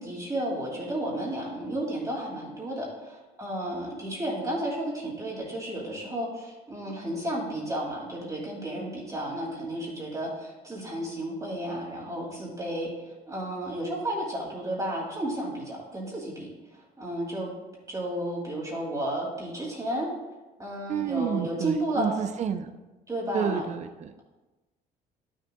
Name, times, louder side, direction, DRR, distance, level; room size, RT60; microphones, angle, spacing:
voice 1, 0.0-17.5 17.9-20.1 20.6-22.1 23.1-23.6, right 1 dB, 20° right, -4 dB, 2.5 m, -32 dB
voice 2, 20.9-22.7 23.3-24.2, right 7 dB, 45° right, 8 dB, 0.5 m, -30 dB
12.0 x 6.4 x 2.3 m, 1.1 s
cardioid pair, 110°, 17 cm